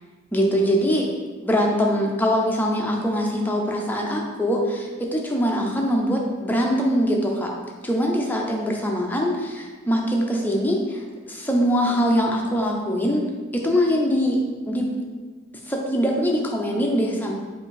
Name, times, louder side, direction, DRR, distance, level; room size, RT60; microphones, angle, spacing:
voice 1, 0.3-1.1 1.4-7.5 7.8-13.2 13.5-14.9 15.6-17.3, equal, 10° left, 0 dB, 0.5 m, -23 dB
5.0 x 2.6 x 3.8 m, 1.4 s
head